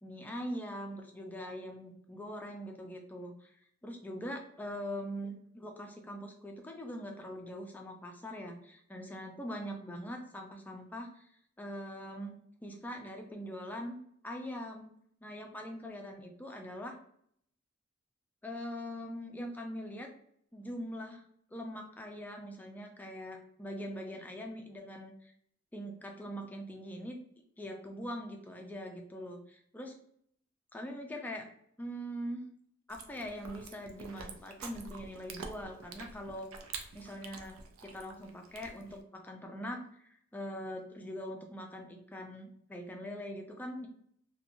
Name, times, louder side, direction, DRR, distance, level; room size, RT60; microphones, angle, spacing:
voice 1, 0.0-11.3 11.6-14.0 14.2-14.9 15.2-17.0 18.4-20.1 20.5-21.2 21.5-25.3 25.7-27.2 27.6-30.0 30.7-31.5 31.8-32.5 32.9-36.5 36.9-43.9, equal, 10° left, 2 dB, 0.3 m, -42 dB
Chewing mastication, 32.9-39.0, right 4 dB, 80° right, 0.4 m, -47 dB
2.5 x 2.2 x 2.9 m, 0.67 s
head